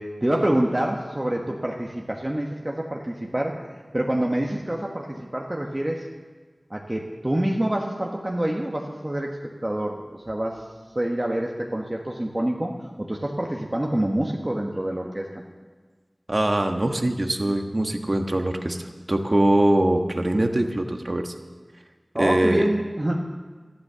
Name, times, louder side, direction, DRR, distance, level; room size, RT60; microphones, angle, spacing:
voice 1, 0.0-6.1 6.7-10.6 10.9-15.3 22.1-23.1, right 1 dB, 30° right, 0 dB, 1.4 m, -27 dB
voice 2, 16.3-21.3 22.1-22.6, right 1 dB, 50° right, 5 dB, 1.3 m, -23 dB
13.0 x 12.0 x 6.8 m, 1.4 s
wide cardioid pair, 45°, 0 cm